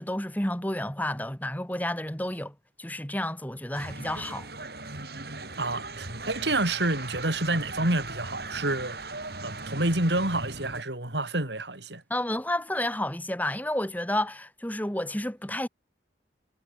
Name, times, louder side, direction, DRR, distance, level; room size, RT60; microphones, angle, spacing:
voice 1, 0.0-4.5 12.1-15.7, left 1 dB, 10° left, 2.5 m, -31 dB
sound 1, 3.7-10.8, right 3 dB, 60° right, 6.8 m, -38 dB
voice 2, 5.6-9.1 9.4-12.0, right 2 dB, 75° right, 6.9 m, -28 dB
head